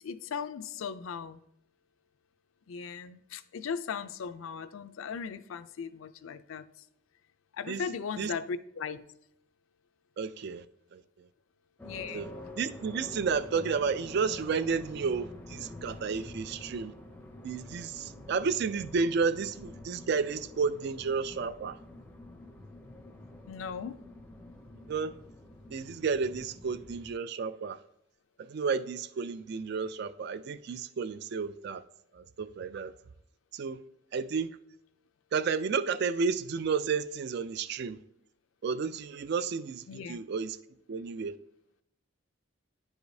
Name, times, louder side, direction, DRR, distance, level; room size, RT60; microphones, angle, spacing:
voice 1, 0.0-1.4 2.7-6.7 7.5-9.0 11.8-12.3 23.5-24.0 39.9-40.2, left 6 dB, 75° left, 0.4 m, -38 dB
voice 2, 10.2-10.6 10.9-11.3 12.1-12.3 12.6-16.9 17.4-21.8 24.9-25.1 25.7-27.8 28.4-31.8 32.1-32.9 33.5-33.8 34.1-34.6 35.3-38.0 38.6-40.6 40.9-41.3, right 5 dB, 50° right, 0.3 m, -32 dB
sound 1, 11.8-27.1, left 1 dB, 10° left, 0.5 m, -47 dB
10.5 x 4.8 x 2.7 m
head